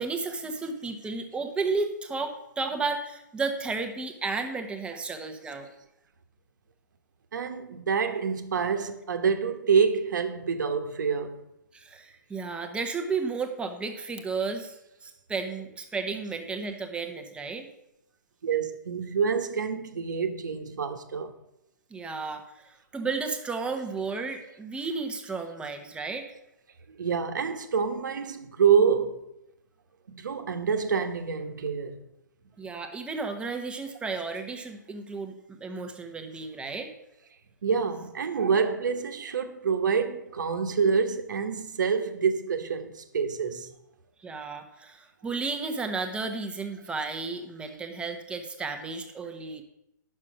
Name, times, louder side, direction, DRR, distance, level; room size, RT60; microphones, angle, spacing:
voice 1, 0.0-5.7 11.7-14.7 15.0-17.7 21.9-26.3 32.6-36.9 44.2-49.6, right 4 dB, 10° right, 1.2 m, -33 dB
voice 2, 7.3-11.4 18.4-21.3 27.0-29.2 30.1-32.0 37.6-43.7, right 6 dB, 70° right, 1.3 m, -27 dB
9.7 x 6.6 x 6.1 m
hypercardioid pair, 125°, 10 cm